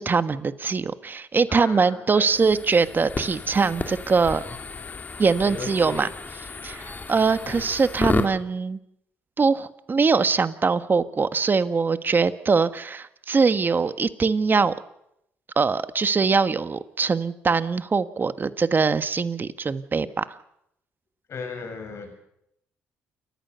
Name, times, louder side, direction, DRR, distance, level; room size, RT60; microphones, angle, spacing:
voice 1, 0.0-4.4 5.2-6.1 6.6-8.8 9.4-14.7 15.6-20.4, right 5 dB, 35° right, 12 dB, 1.4 m, -22 dB
voice 2, 1.5-2.3 5.4-6.0 7.5-7.7 21.3-22.2, left 4 dB, 55° left, 4 dB, 7.3 m, -36 dB
sound 1, 2.2-8.3, left 3 dB, 30° left, 2.5 m, -32 dB
29.0 x 14.0 x 6.9 m, 0.78 s
hypercardioid pair, 55°, 6 cm